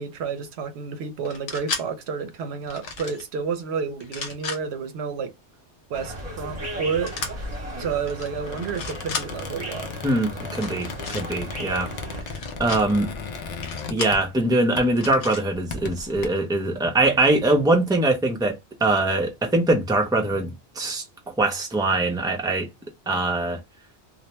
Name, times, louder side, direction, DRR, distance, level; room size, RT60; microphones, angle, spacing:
voice 1, 0.0-5.3 5.9-7.5 7.8-9.9, right 5 dB, 70° right, 0.8 m, -30 dB
sound 1, 1.2-1.8 2.7-3.2 4.0-4.6 7.1-7.3 8.0-8.3 8.6-9.3 10.5-11.2 12.2-12.8 13.6-14.2 15.0-15.4, left 4 dB, 85° left, 1.0 m, -33 dB
sound 2, 5.9-12.2, right 1 dB, 35° right, 0.9 m, -36 dB
Squeak, 8.4-14.5 14.8-15.0 15.5-16.3, left 4 dB, 65° left, 0.4 m, -36 dB
voice 2, 10.0-11.9 12.2-12.3 12.6-13.1 13.9-21.0 21.4-22.7 23.1-23.6, right 2 dB, 5° right, 0.3 m, -22 dB
2.4 x 2.1 x 2.9 m
omnidirectional pair, 1.2 m